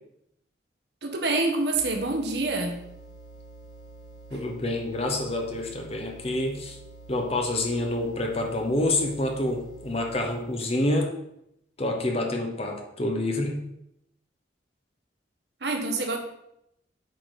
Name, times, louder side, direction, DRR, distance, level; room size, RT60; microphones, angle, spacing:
voice 1, 1.0-2.8 15.6-16.2, right 2 dB, 60° right, 3 dB, 1.2 m, -26 dB
sound 1, 1.7-10.4, right 3 dB, 75° left, 2.1 m, -47 dB
voice 2, 4.3-6.8 7.1-11.1 11.8-13.6, left 1 dB, 30° left, 2 dB, 1.1 m, -27 dB
8.6 x 4.2 x 5.0 m, 0.78 s
head